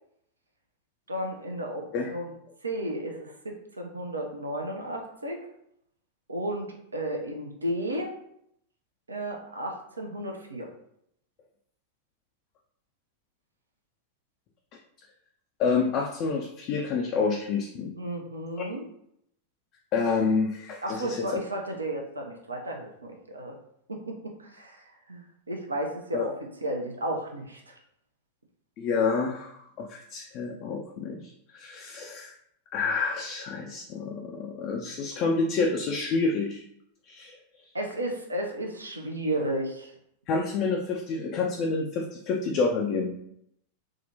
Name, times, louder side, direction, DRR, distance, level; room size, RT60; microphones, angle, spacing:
voice 1, 1.1-2.3 2.6-5.4 6.3-8.1 9.1-10.7 18.0-18.8 20.8-23.5 23.9-26.3 26.6-27.8 37.7-39.9, right 1 dB, 80° right, 2 dB, 0.5 m, -33 dB
voice 2, 15.6-17.9 19.9-21.3 26.1-26.3 28.8-32.3 32.7-36.6 37.1-37.4 40.3-43.1, left 4 dB, 40° left, 1 dB, 0.3 m, -28 dB
3.7 x 2.1 x 2.6 m, 0.74 s
figure-of-eight pair, 90°, 0 cm